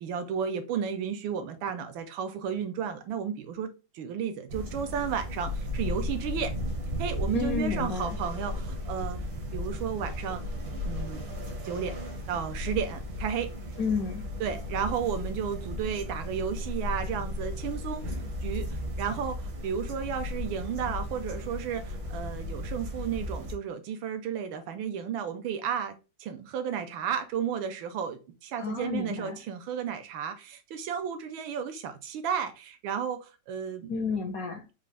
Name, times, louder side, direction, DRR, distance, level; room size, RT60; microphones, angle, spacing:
voice 1, 0.0-6.5 7.0-9.2 9.5-10.4 10.8-11.2 11.6-12.0 12.3-13.5 14.4-33.9, right 7 dB, 85° right, 1.5 m, -33 dB
sound 1, 4.5-23.5, left 1 dB, 70° right, 1.9 m, -35 dB
voice 2, 7.3-8.2 13.8-14.2 28.6-29.4 33.9-34.6, left 5 dB, 75° left, 0.8 m, -31 dB
5.4 x 2.5 x 3.3 m
omnidirectional pair, 2.2 m